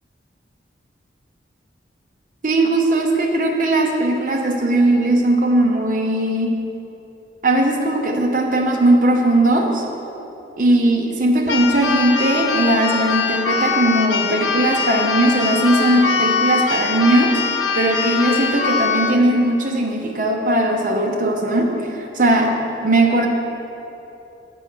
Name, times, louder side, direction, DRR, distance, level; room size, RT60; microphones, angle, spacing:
voice 1, 2.4-6.6 7.4-9.8 10.6-17.3 17.7-23.3, right 1 dB, 45° right, 1 dB, 0.8 m, -18 dB
Keyboard (musical), 11.5-19.2, left 5 dB, 70° left, 0.5 m, -22 dB
8.9 x 3.9 x 6.0 m, 3.0 s
head